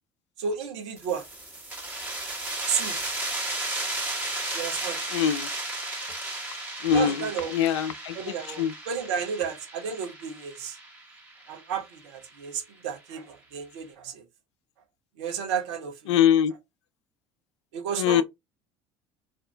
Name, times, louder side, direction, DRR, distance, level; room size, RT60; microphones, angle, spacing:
voice 1, 0.4-1.2 2.7-3.0 4.5-5.0 6.9-7.5 8.1-10.8 11.5-14.2 15.2-16.2 17.7-18.2, right 7 dB, 65° right, 0.8 m, -32 dB
sound 1, 1.0-12.3, right 2 dB, 10° right, 1.3 m, -34 dB
voice 2, 5.1-5.5 6.8-8.7 16.1-16.5 18.0-18.2, left 9 dB, 70° left, 0.4 m, -23 dB
2.6 x 2.5 x 3.3 m
figure-of-eight pair, 60°, 15 cm